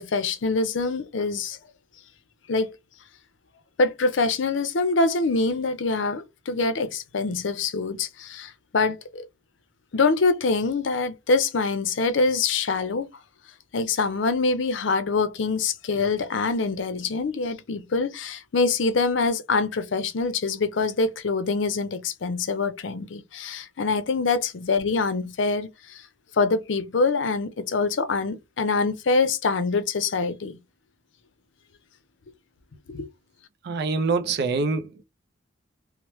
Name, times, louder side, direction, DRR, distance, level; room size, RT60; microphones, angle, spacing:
voice 1, 0.0-1.6 2.5-2.7 3.8-9.2 9.9-13.1 13.7-26.0 26.3-30.6 32.9-33.1, left 3 dB, 65° left, 0.5 m, -25 dB
voice 2, 33.6-35.0, right 4 dB, 55° right, 0.4 m, -25 dB
3.0 x 2.0 x 3.0 m
head